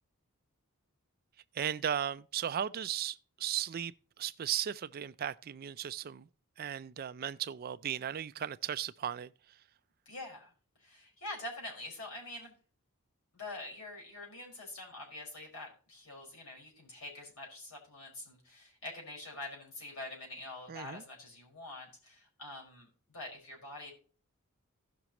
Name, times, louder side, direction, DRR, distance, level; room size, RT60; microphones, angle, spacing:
voice 1, 1.5-6.3 6.6-9.3 20.7-21.0, right 9 dB, 45° right, 0.3 m, -36 dB
voice 2, 10.0-10.5 10.8-12.5 13.3-23.9, left 2 dB, 75° left, 5.0 m, -45 dB
16.5 x 6.0 x 3.0 m
head